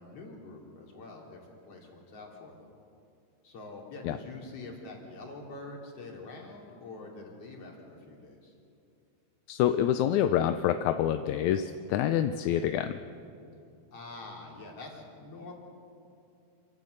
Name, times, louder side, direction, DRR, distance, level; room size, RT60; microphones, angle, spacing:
voice 1, 0.0-2.7 3.4-8.5 13.9-15.5, left 2 dB, 50° left, 0 dB, 3.9 m, -45 dB
voice 2, 9.5-13.0, left 10 dB, 75° left, 9 dB, 1.9 m, -27 dB
27.5 x 16.0 x 6.6 m, 2.5 s
omnidirectional pair, 3.6 m